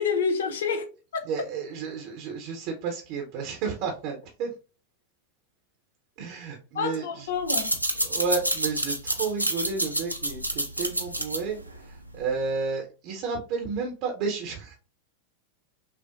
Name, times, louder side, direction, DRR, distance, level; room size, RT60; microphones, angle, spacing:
voice 1, 0.0-1.3 6.7-7.8, left 5 dB, 60° left, 0.6 m, -28 dB
voice 2, 1.3-4.5 6.2-7.3 8.0-14.7, right 5 dB, 45° right, 0.8 m, -32 dB
sound 1, 7.3-12.5, right 1 dB, 90° right, 0.5 m, -29 dB
5.7 x 2.1 x 2.5 m
figure-of-eight pair, 90°, 0 cm